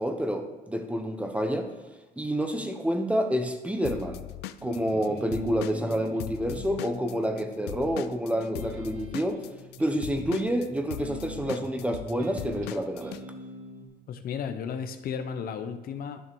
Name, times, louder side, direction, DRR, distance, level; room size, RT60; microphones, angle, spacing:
voice 1, 0.0-1.7 2.2-4.2 4.6-9.5 9.8-13.2, equal, 5° right, 6 dB, 1.3 m, -28 dB
Drum kit / Drum, 3.8-7.4 7.7-13.2, left 15 dB, 90° left, 0.5 m, -39 dB
sound 1, 4.6-13.8, right 2 dB, 45° right, 2.5 m, -43 dB
voice 2, 14.1-16.2, left 7 dB, 60° left, 9 dB, 0.9 m, -34 dB
11.0 x 6.1 x 6.2 m, 1.2 s
cardioid pair, 110°, 17 cm